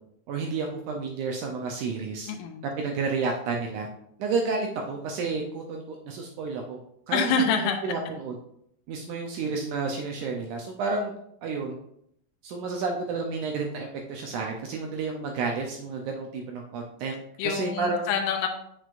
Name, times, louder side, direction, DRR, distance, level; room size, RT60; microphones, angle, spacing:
voice 1, 0.3-2.3 2.8-3.9 4.2-6.8 7.1-7.3 7.8-8.3 8.9-11.1 11.4-11.8 12.4-17.2 17.4-18.1, right 4 dB, 80° right, 1 dB, 1.8 m, -30 dB
voice 2, 2.3-2.7 7.1-7.8 17.4-18.5, left 5 dB, 80° left, 3 dB, 2.2 m, -26 dB
8.0 x 6.3 x 2.5 m, 0.71 s
omnidirectional pair, 4.3 m